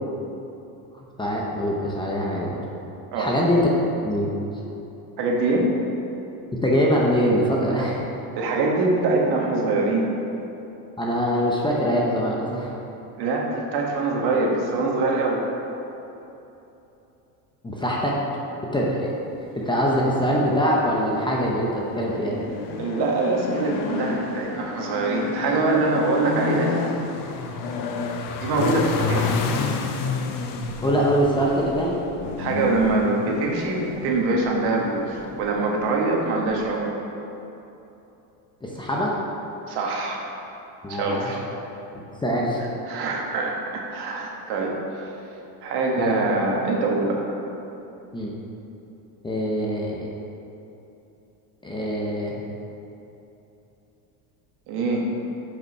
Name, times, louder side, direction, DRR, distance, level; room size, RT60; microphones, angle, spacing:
voice 1, 1.2-2.6 3.2-3.7 4.0-4.3 6.5-8.0 11.0-12.7 17.6-18.2 18.7-19.1 19.6-22.4 30.8-32.0 38.6-39.2 40.8-41.3 42.2-42.6 46.0-46.1 48.1-48.3 49.2-50.1 51.6-52.4, equal, 10° left, -3 dB, 0.8 m, -23 dB
voice 2, 5.2-5.7 7.7-7.8 8.4-10.0 13.2-15.4 22.8-26.8 28.4-29.3 32.4-37.0 39.7-40.2 40.9-41.4 42.9-44.7 45.6-47.3 54.7-55.1, right 3 dB, 60° right, -1 dB, 1.6 m, -24 dB
sound 1, 20.1-36.8, left 5 dB, 45° left, 0.8 m, -30 dB
7.9 x 5.3 x 5.5 m, 3.0 s
cardioid pair, 140°, 45 cm